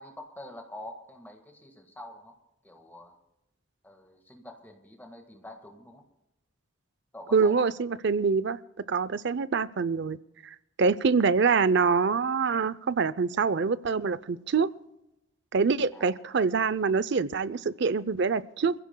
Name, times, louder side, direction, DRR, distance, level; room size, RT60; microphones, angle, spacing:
voice 1, 0.0-2.3 2.6-3.2 3.8-6.0 7.1-7.6 10.8-10.9 15.9-16.2, left 1 dB, 10° left, 3 dB, 1.6 m, -46 dB
voice 2, 7.3-8.6 8.9-10.2 10.4-14.7 15.5-18.7, right 5 dB, 60° right, 17 dB, 0.5 m, -25 dB
27.5 x 16.0 x 2.2 m, 0.91 s
head